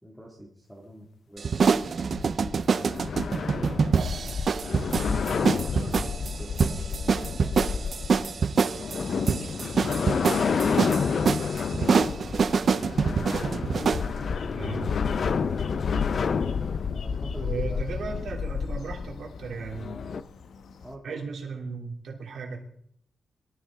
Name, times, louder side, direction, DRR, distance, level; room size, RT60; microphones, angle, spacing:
voice 1, 0.0-3.7 5.6-11.2 14.3-15.0 15.3-15.7 16.9-17.8 20.8-21.2, equal, ahead, -2 dB, 2.1 m, -47 dB
sound 1, 1.4-14.1, right 5 dB, 45° right, 0.6 m, -26 dB
sound 2, 1.5-20.2, left 6 dB, 50° left, 0.6 m, -30 dB
voice 2, 5.0-5.5 5.8-6.0 14.5-14.9 17.4-20.0 21.0-22.6, right 5 dB, 65° right, 1 dB, 2.9 m, -36 dB
sound 3, 8.9-21.0, left 5 dB, 85° left, 1.3 m, -50 dB
23.5 x 13.0 x 3.7 m, 0.67 s
wide cardioid pair, 165°, 0 cm